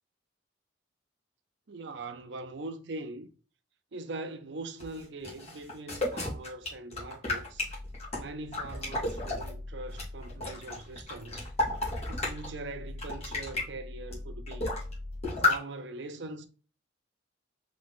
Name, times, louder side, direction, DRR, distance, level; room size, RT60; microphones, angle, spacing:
voice 1, 1.7-3.3 3.9-7.7 8.2-11.5 12.1-14.7 15.3-16.5, right 2 dB, 65° right, 0.6 m, -42 dB
sound 1, 4.8-9.5 9.9-12.5 12.9-13.6 14.1-14.2 14.5-14.9 15.2-15.6, left 2 dB, 35° left, 1.5 m, -32 dB
sound 2, 7.5-15.2, left 1 dB, 15° right, 1.2 m, -44 dB
3.9 x 3.0 x 3.4 m
head